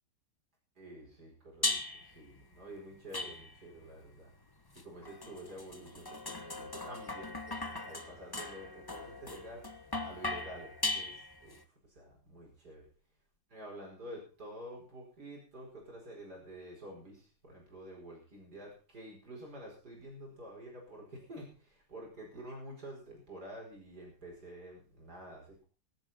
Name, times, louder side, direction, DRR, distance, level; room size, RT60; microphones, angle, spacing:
voice 1, 0.8-1.8 2.0-4.3 4.8-9.7 10.0-11.6 11.9-12.8 13.5-25.7, right 1 dB, 55° right, -1 dB, 5.7 m, -49 dB
sound 1, 1.6-2.2 3.1-3.8 4.8-11.6, left 2 dB, 15° left, 0.8 m, -39 dB
24.0 x 8.5 x 4.3 m, 0.36 s
omnidirectional pair, 2.1 m